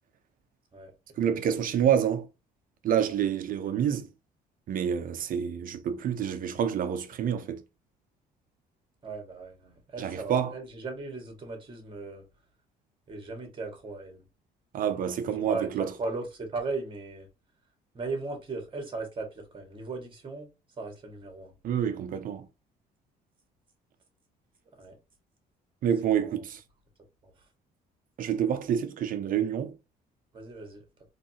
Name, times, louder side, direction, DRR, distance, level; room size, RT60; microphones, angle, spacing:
voice 1, 1.2-2.3 2.8-4.1 4.7-7.6 10.0-10.5 14.7-15.9 21.6-22.5 25.8-26.6 28.2-29.8, right 9 dB, 55° right, 0.8 m, -28 dB
voice 2, 9.0-12.2 13.1-14.2 15.2-17.3 17.9-21.5 24.8-25.0 26.1-26.4 27.2-27.5 30.3-30.8, right 3 dB, 30° right, 1.9 m, -37 dB
4.0 x 3.3 x 2.9 m
cardioid pair, 110°, 17 cm